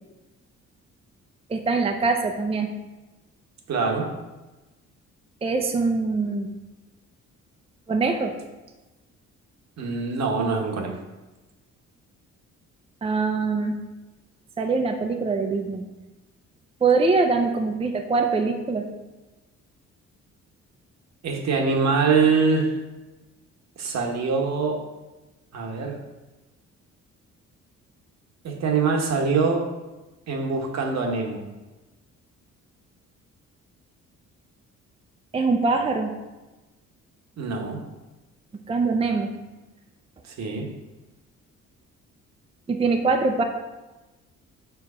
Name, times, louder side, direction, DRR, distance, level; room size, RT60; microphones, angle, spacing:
voice 1, 1.5-2.7 5.4-6.5 7.9-8.3 13.0-13.8 14.6-15.9 16.8-18.9 35.3-36.1 38.7-39.3 42.7-43.4, right 4 dB, 20° right, 4 dB, 0.5 m, -23 dB
voice 2, 3.7-4.1 9.8-10.9 21.2-22.8 23.8-24.8 25.5-26.0 28.4-29.7 30.3-31.4 37.4-37.8 40.2-40.7, right 4 dB, 60° right, 3 dB, 1.1 m, -24 dB
4.7 x 3.8 x 5.4 m, 1.1 s
cardioid pair, 90°, 30 cm